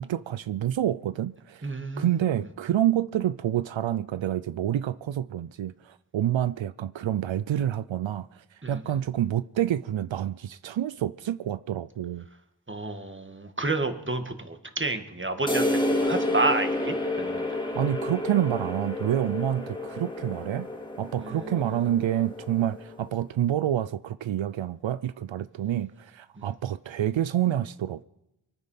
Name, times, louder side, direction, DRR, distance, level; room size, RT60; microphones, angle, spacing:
voice 1, 0.0-12.2 17.7-20.7 21.0-28.0, right 11 dB, 85° right, 0.5 m, -28 dB
voice 2, 1.6-2.2 8.6-8.8 12.7-17.6 21.2-21.5 26.4-26.5, right 2 dB, 25° right, 1.9 m, -30 dB
sound 1, 15.5-23.0, left 1 dB, 10° left, 2.8 m, -30 dB
24.0 x 9.4 x 5.8 m
wide cardioid pair, 50°, 45 cm